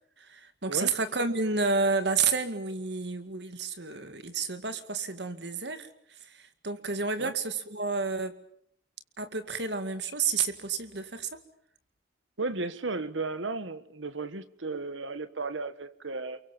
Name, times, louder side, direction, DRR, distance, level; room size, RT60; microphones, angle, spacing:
voice 1, 0.2-5.9 6.2-8.3 9.2-11.3, right 4 dB, 65° right, 2.2 m, -30 dB
voice 2, 12.4-16.4, right 3 dB, 85° right, 1.5 m, -34 dB
29.5 x 23.5 x 7.2 m
head